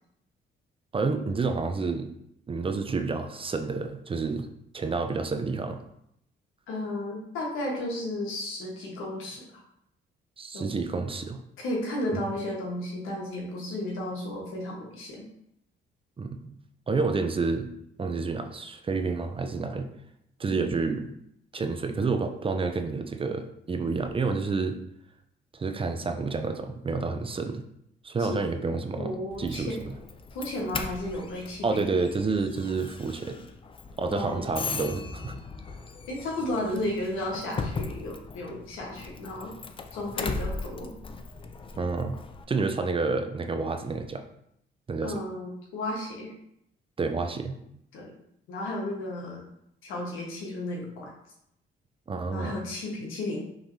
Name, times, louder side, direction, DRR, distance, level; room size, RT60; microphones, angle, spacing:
voice 1, 0.9-2.1 2.5-5.8 10.4-11.4 12.1-12.2 16.2-16.6 16.9-17.7 18.0-19.9 20.4-21.1 21.5-24.8 25.5-27.6 28.0-30.0 31.6-33.4 34.0-35.4 41.8-42.2 42.5-44.2 44.9-45.2 47.0-47.6 52.1-52.6, right 4 dB, 25° right, 6 dB, 0.5 m, -29 dB
voice 2, 6.7-9.4 10.5-10.6 11.6-15.2 20.5-20.6 28.2-28.5 29.0-29.8 30.3-31.7 34.1-34.6 36.1-39.5 39.9-40.9 45.0-46.3 47.9-48.1 48.5-49.4 49.8-51.1 52.3-53.4, left 1 dB, 85° left, -1 dB, 1.3 m, -33 dB
Doorbell, 29.3-42.4, left 4 dB, 25° left, 0.4 m, -38 dB
5.8 x 3.2 x 2.7 m, 0.75 s
cardioid pair, 90°, 20 cm